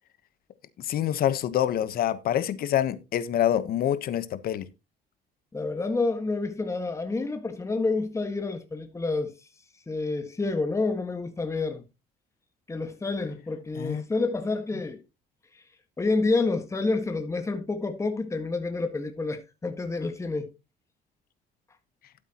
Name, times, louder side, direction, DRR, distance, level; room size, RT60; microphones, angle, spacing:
voice 1, 0.8-4.7 13.7-14.0, left 11 dB, 60° left, 1.1 m, -26 dB
voice 2, 5.5-9.3 9.9-11.8 12.7-15.0 15.5-15.6 16.0-20.5, left 3 dB, 15° left, 1.6 m, -28 dB
12.5 x 8.4 x 3.0 m
cardioid pair, 110°, 17 cm